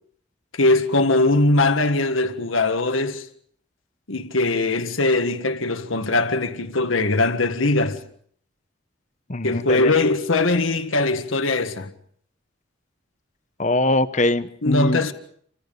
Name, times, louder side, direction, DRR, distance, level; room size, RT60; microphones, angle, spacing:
voice 1, 0.6-3.3 4.1-8.0 9.4-11.9 14.6-15.1, left 2 dB, 80° left, 1.7 m, -21 dB
voice 2, 9.3-9.9 13.6-15.0, left 2 dB, 35° left, 1.0 m, -22 dB
29.0 x 25.0 x 5.3 m
head